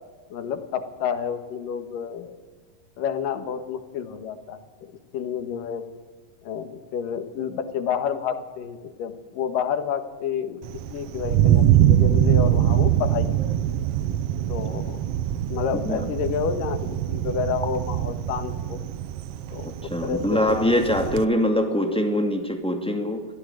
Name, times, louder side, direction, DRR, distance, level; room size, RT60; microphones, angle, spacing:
voice 1, 0.3-2.4 3.0-4.6 5.1-5.8 6.4-13.3 14.5-15.1 15.5-18.8 19.5-20.8, left 7 dB, 80° left, 8 dB, 3.2 m, -30 dB
Thunder, 10.6-21.2, right 11 dB, 85° right, 1.3 m, -23 dB
voice 2, 19.6-23.3, left 1 dB, ahead, 4 dB, 1.3 m, -23 dB
23.0 x 15.0 x 9.1 m, 1.4 s
omnidirectional pair, 3.8 m